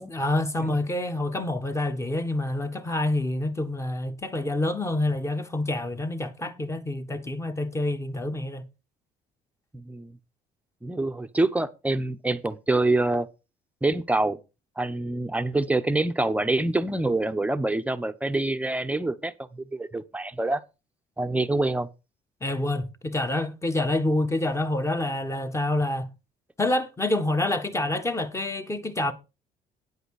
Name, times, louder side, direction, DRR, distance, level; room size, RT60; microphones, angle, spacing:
voice 1, 0.0-8.7 22.4-26.1 26.6-29.1, left 1 dB, 15° left, 1.4 m, -27 dB
voice 2, 9.7-10.2 10.8-13.3 13.8-14.4 14.8-20.6 21.2-21.9, right 2 dB, 10° right, 0.9 m, -26 dB
9.6 x 8.0 x 4.9 m
cardioid pair, 110°, 17 cm